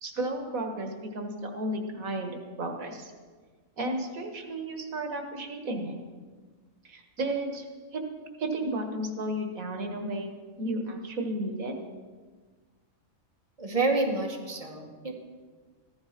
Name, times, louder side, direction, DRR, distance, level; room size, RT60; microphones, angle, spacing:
voice 1, 0.0-3.1 3.8-6.0 6.9-7.7 7.9-8.0 8.4-11.8, right 1 dB, 85° right, 4 dB, 1.9 m, -33 dB
voice 2, 13.6-15.1, right 3 dB, 25° right, 1 dB, 1.9 m, -28 dB
14.5 x 12.0 x 5.9 m, 1.4 s
omnidirectional pair, 1.4 m